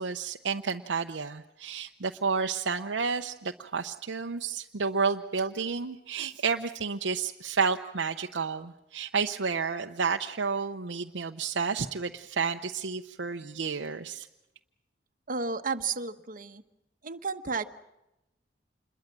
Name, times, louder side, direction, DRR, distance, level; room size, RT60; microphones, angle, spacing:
voice 1, 0.0-14.3, right 5 dB, 85° right, 4 dB, 0.8 m, -31 dB
voice 2, 15.3-16.6 17.0-17.6, right 4 dB, 50° right, 9 dB, 1.2 m, -32 dB
27.5 x 21.5 x 7.5 m, 0.93 s
head